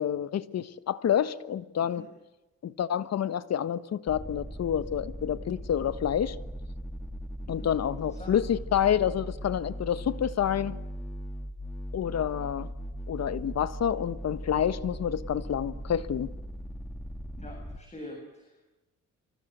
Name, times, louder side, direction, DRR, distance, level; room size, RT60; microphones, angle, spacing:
voice 1, 0.0-2.0 2.6-6.4 7.5-10.8 11.9-12.7 13.1-16.3, left 9 dB, 60° left, 1.4 m, -28 dB
sound 1, 4.1-17.8, equal, 5° left, 2.6 m, -39 dB
voice 2, 7.4-8.4 17.4-18.6, left 1 dB, 20° left, 7.2 m, -46 dB
26.5 x 24.5 x 8.1 m
cardioid pair, 90°, 30 cm